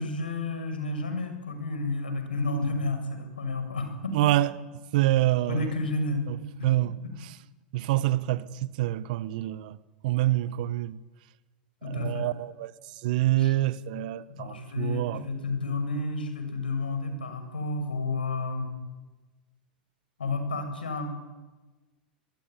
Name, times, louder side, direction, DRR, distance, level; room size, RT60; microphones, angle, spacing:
voice 1, 0.0-4.1 5.5-6.3 6.6-6.7 7.0-7.1 11.8-12.3 13.4-13.5 14.3-18.7 20.2-21.1, left 2 dB, 85° left, 6.2 m, -31 dB
voice 2, 4.1-4.6 4.9-5.7 6.3-6.4 6.6-7.3 7.7-9.8 10.0-11.0 11.8-12.7 13.0-15.2, right 15 dB, 60° right, 1.3 m, -26 dB
24.0 x 21.0 x 9.5 m
hypercardioid pair, 100°, 5 cm